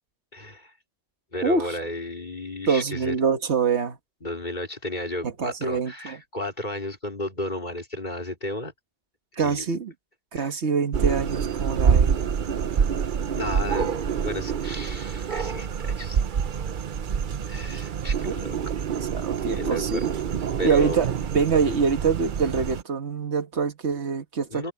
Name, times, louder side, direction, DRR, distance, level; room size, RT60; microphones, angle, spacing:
voice 1, 0.3-0.7 1.3-3.1 4.2-8.7 9.4-9.6 10.3-10.5 13.3-16.2 17.5-18.6 19.5-20.1 20.6-21.0 24.5-24.7, left 1 dB, 45° left, 4.0 m, -33 dB
voice 2, 1.4-1.8 2.7-4.0 5.2-6.2 9.4-9.9 10.3-12.1 18.2-18.3 19.0-20.1 20.6-24.7, right 5 dB, 90° right, 1.7 m, -25 dB
sound 1, 10.9-22.8, right 7 dB, 55° right, 0.8 m, -26 dB
omnidirectional pair, 1.1 m